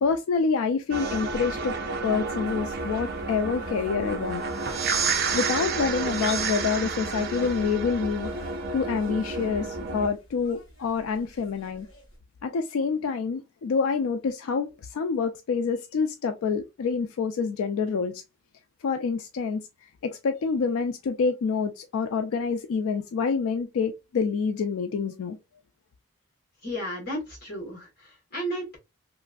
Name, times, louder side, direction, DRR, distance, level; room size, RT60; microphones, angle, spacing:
voice 1, 0.0-1.7 2.0-4.4 5.3-8.3 8.7-11.9 12.4-18.2 18.8-19.6 20.0-25.4, left 5 dB, 85° left, 0.3 m, -27 dB
sound 1, 0.9-10.1, right 4 dB, 50° right, 0.5 m, -30 dB
sound 2, 2.3-12.2, left 2 dB, 65° left, 1.2 m, -48 dB
voice 2, 26.6-28.8, equal, 50° left, 1.5 m, -33 dB
3.0 x 2.5 x 2.3 m
head